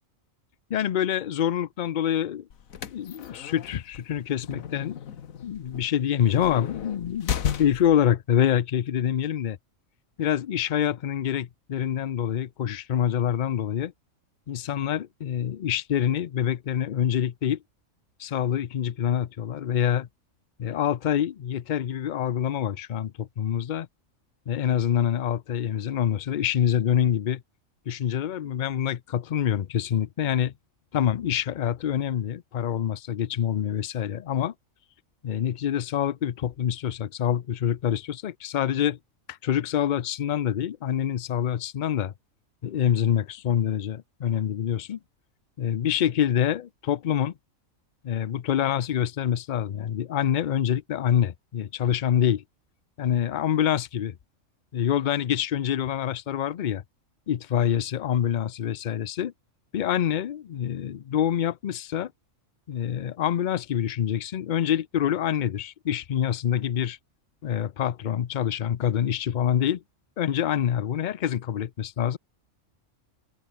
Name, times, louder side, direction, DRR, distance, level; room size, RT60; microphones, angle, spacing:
voice 1, 0.7-2.4 2.9-5.0 5.4-9.6 10.2-13.9 14.5-17.6 18.2-20.1 20.6-23.9 24.5-27.4 27.9-30.5 30.9-34.5 35.2-39.0 39.3-42.1 42.6-45.0 45.6-47.3 48.0-52.4 53.0-54.2 54.7-56.8 57.3-59.3 59.7-62.1 62.7-67.0 67.4-69.8 70.2-72.2, left 10 dB, 50° left, 0.6 m, -26 dB
sound 1, 2.5-8.1, left 8 dB, 85° left, 1.5 m, -34 dB
open air
omnidirectional pair, 1.4 m